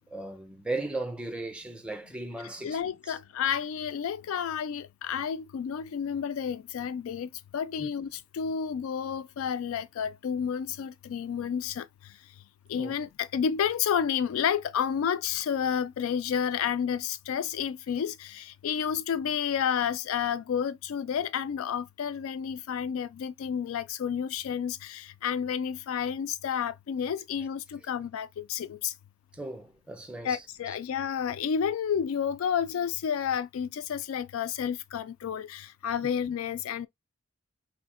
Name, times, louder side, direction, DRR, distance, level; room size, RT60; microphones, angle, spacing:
voice 1, 0.1-2.8 3.1-3.2 7.8-7.9 12.7-12.9 29.3-30.4, right 2 dB, 5° right, 0.5 m, -36 dB
voice 2, 2.6-11.8 12.7-28.9 30.2-36.9, left 8 dB, 80° left, 0.3 m, -30 dB
3.1 x 2.1 x 4.1 m
head